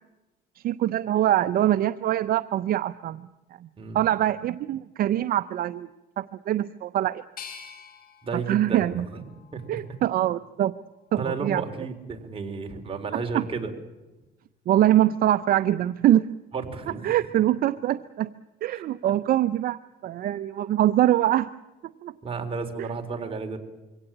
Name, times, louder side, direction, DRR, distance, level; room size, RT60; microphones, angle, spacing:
voice 1, 0.6-3.3 3.6-3.7 3.9-5.9 6.2-7.2 8.3-9.1 9.7-10.7 11.1-11.6 13.1-13.4 14.7-16.3 17.0-18.3 18.6-21.5 22.0-22.1, right 12 dB, 60° right, 13 dB, 0.7 m, -23 dB
sound 1, 7.4-10.3 10.8-11.7, left 7 dB, 55° left, 4.0 m, -47 dB
voice 2, 8.2-9.8 11.2-13.7 16.5-17.2 18.7-18.8 22.2-23.6, right 4 dB, 35° right, 4 dB, 3.8 m, -33 dB
24.0 x 17.5 x 8.7 m, 1.1 s
cardioid pair, 110°, 17 cm